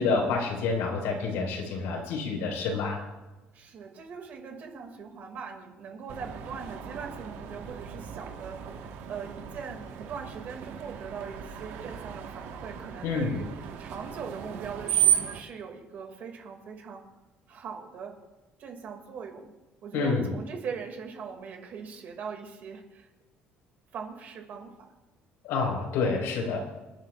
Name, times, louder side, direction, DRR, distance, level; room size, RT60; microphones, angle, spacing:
voice 1, 0.0-3.0 13.0-13.4 19.9-20.3 25.4-26.6, left 4 dB, 85° left, 0 dB, 4.7 m, -28 dB
voice 2, 3.5-8.8 9.1-13.5 13.8-17.0 17.5-18.1 18.6-19.5 19.8-23.1 23.9-24.7, right 6 dB, 45° right, 3 dB, 2.3 m, -40 dB
Screech, 6.1-15.4, right 9 dB, 80° right, 1.5 m, -33 dB
28.0 x 11.0 x 2.5 m, 1.1 s
cardioid pair, 170°, 4 cm